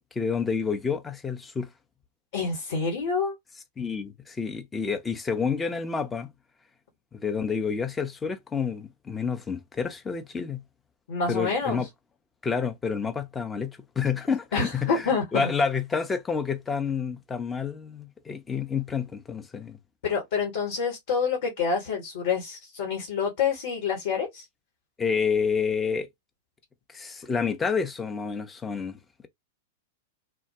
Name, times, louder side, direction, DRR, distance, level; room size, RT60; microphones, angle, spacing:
voice 1, 0.2-1.7 3.8-6.3 7.1-10.6 11.3-11.9 12.4-19.8 25.0-26.1 26.9-29.3, left 5 dB, 15° left, 0.6 m, -29 dB
voice 2, 2.3-3.3 11.1-11.8 14.5-15.5 20.0-24.4, left 5 dB, 55° left, 1.3 m, -27 dB
3.4 x 2.2 x 2.7 m
figure-of-eight pair, 95°, 0 cm